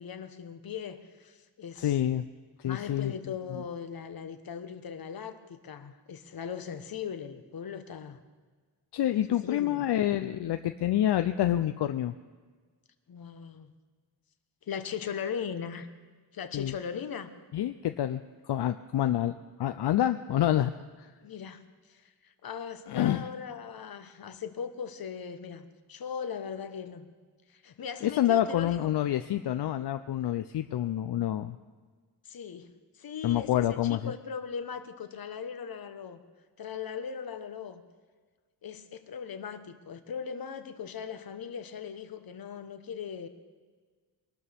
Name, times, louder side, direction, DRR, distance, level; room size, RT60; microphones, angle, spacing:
voice 1, 0.0-1.9 2.6-8.2 9.4-9.9 13.1-13.7 14.7-15.9 16.3-17.3 21.2-21.6 21.9-22.1 22.4-27.1 27.5-28.9 32.2-36.2 36.6-37.8 38.6-43.3, left 7 dB, 60° left, 9 dB, 1.2 m, -39 dB
voice 2, 1.8-2.2 2.6-3.1 3.5-3.6 8.9-12.1 16.5-16.7 17.5-19.3 19.6-20.7 21.0-21.1 22.9-23.3 28.0-31.6 33.2-34.1, left 12 dB, 80° left, 9 dB, 0.6 m, -27 dB
23.0 x 12.5 x 3.5 m, 1.5 s
wide cardioid pair, 125°, 40 cm